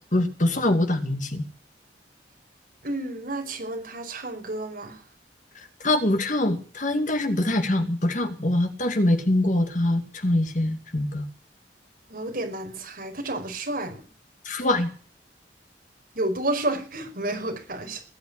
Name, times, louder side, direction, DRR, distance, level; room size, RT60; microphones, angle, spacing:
voice 1, 0.1-1.5 5.8-11.3 14.5-14.9, left 1 dB, 45° left, 7 dB, 2.2 m, -24 dB
voice 2, 2.8-5.0 12.1-14.0 16.2-18.0, right 1 dB, 55° right, 2 dB, 5.1 m, -30 dB
20.0 x 8.0 x 8.8 m, 0.39 s
head